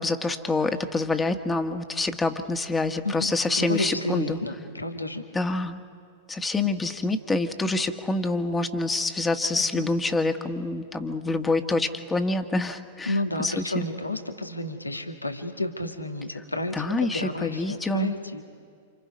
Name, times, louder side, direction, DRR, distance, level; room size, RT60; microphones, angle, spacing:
voice 1, 0.0-4.4 5.3-5.8 6.3-13.1 13.4-13.8 16.7-18.1, left 2 dB, 10° left, 7 dB, 1.5 m, -26 dB
voice 2, 3.0-5.2 6.8-6.9 9.6-9.9 13.1-18.4, left 1 dB, 90° left, 5 dB, 1.8 m, -31 dB
28.5 x 27.5 x 5.3 m, 2.2 s
figure-of-eight pair, 100°, 0 cm